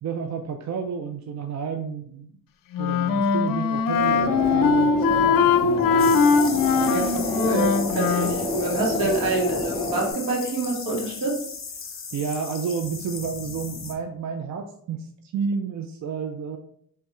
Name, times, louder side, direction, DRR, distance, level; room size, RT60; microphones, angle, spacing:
voice 1, 0.0-2.3 2.8-6.1 9.0-9.2 12.1-16.6, right 6 dB, 50° right, 5 dB, 0.5 m, -31 dB
Wind instrument woodwind instrument, 2.7-8.4, left 5 dB, 65° left, 0.5 m, -21 dB
sound 1, 3.9-10.1, left 1 dB, 15° left, 1.5 m, -29 dB
sound 2, 6.0-13.9, left 5 dB, 35° left, 0.9 m, -36 dB
voice 2, 6.9-11.4, right 2 dB, 75° right, -2 dB, 1.7 m, -27 dB
4.2 x 3.3 x 3.6 m, 0.64 s
cardioid pair, 115°, 36 cm